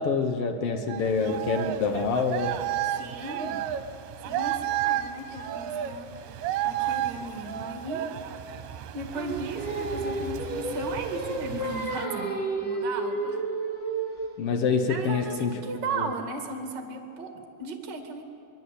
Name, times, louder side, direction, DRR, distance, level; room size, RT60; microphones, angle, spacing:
voice 1, 0.0-2.6 14.4-15.6 15.9-16.1, left 4 dB, 80° left, 6 dB, 1.3 m, -26 dB
sound 1, 0.9-12.1, right 11 dB, 70° right, 2.5 m, -33 dB
voice 2, 2.9-3.6 4.2-6.1 6.6-8.1 8.9-13.4 14.9-18.2, right 3 dB, 35° right, 3 dB, 2.1 m, -36 dB
Singing, 9.1-14.4, right 2 dB, 15° left, 2.9 m, -31 dB
23.0 x 22.5 x 8.4 m, 2.7 s
omnidirectional pair, 4.3 m